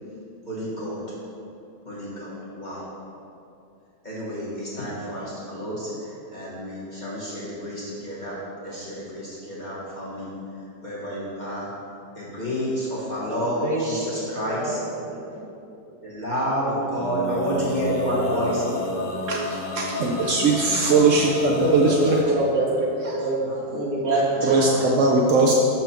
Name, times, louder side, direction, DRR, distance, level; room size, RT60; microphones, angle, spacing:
voice 1, 0.4-1.0 1.8-2.8 4.0-8.4 8.6-10.3 10.8-11.7 12.1-14.8 16.0-19.0 20.0-20.3 20.6-20.7 22.2-22.3 23.4-23.6 24.0-24.1, equal, 25° left, -9 dB, 1.4 m, -30 dB
voice 2, 13.6-14.2 14.5-14.8 15.1-15.5 16.7-16.8 18.0-19.1 21.1-22.1 22.3-23.4 23.7-25.5, right 1 dB, 35° right, -9 dB, 2.2 m, -27 dB
Male singing, 16.9-22.2, left 3 dB, 65° left, 1.4 m, -31 dB
voice 3, 19.3-22.2 23.0-23.2 24.4-25.5, right 3 dB, 75° right, -1 dB, 0.7 m, -20 dB
7.0 x 4.4 x 5.8 m, 2.6 s
omnidirectional pair, 1.9 m